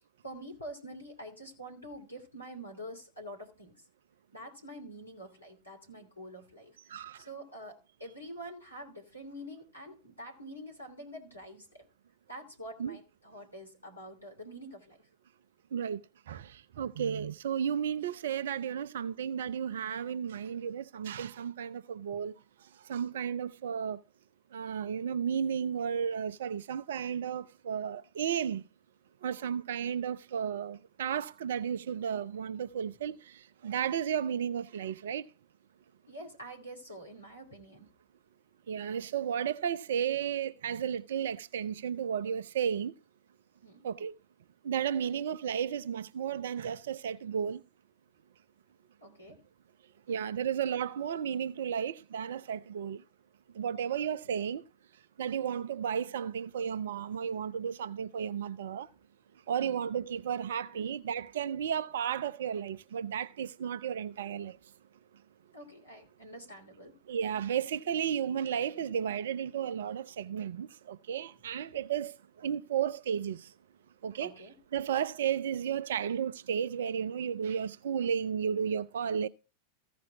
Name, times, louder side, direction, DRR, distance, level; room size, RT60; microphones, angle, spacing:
voice 1, 0.2-3.7 4.3-11.9 12.3-15.1 22.1-22.2 36.1-37.9 43.6-43.9 45.0-45.1 49.0-49.4 59.6-59.8 60.7-60.9 65.5-67.0 74.2-74.5, right 1 dB, 85° left, 2.7 m, -46 dB
voice 2, 6.9-7.2 12.8-13.0 15.7-16.0 16.3-22.3 22.9-24.0 24.5-28.6 29.2-35.3 38.7-42.9 43.8-44.1 44.6-47.6 50.1-53.0 53.5-54.6 55.2-58.9 59.5-64.6 67.1-73.5 74.0-74.3 74.7-79.3, right 8 dB, 60° right, 0.4 m, -33 dB
15.0 x 5.1 x 4.6 m
figure-of-eight pair, 90°, 0 cm